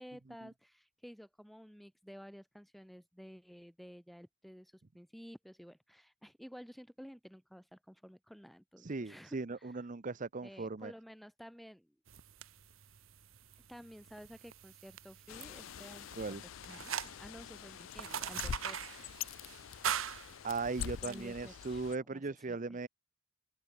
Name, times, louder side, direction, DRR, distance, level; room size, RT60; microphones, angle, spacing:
voice 1, 0.0-9.8 10.4-12.0 13.7-16.4 16.7-19.1 21.0-22.8, equal, ahead, 0.9 m, -53 dB
voice 2, 8.8-10.9 16.2-16.4 20.4-22.9, right 3 dB, 40° right, 0.7 m, -38 dB
sound 1, 12.1-21.2, right 8 dB, 80° right, 1.3 m, -43 dB
Bird, 15.3-22.0, left 9 dB, 70° left, 0.4 m, -45 dB
open air
head